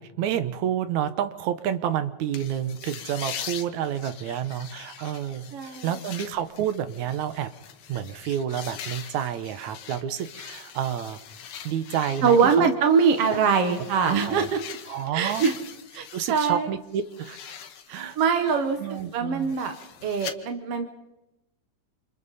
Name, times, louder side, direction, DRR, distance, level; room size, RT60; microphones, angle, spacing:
voice 1, 0.0-7.5 7.9-11.2 11.6-12.7 13.3-13.4 14.2-14.5 14.9-15.5 16.1-17.5 17.9-18.2 18.8-19.5, right 9 dB, 70° right, 11 dB, 2.2 m, -29 dB
sound 1, 2.3-16.6 16.9-20.3, left 8 dB, 70° left, 2.6 m, -42 dB
voice 2, 5.5-5.9 12.2-14.6 15.1-15.5 15.9-16.7 17.9-18.8 19.1-19.7 20.0-21.0, right 6 dB, 55° right, 6 dB, 2.0 m, -23 dB
28.5 x 27.0 x 4.2 m, 0.95 s
omnidirectional pair, 3.6 m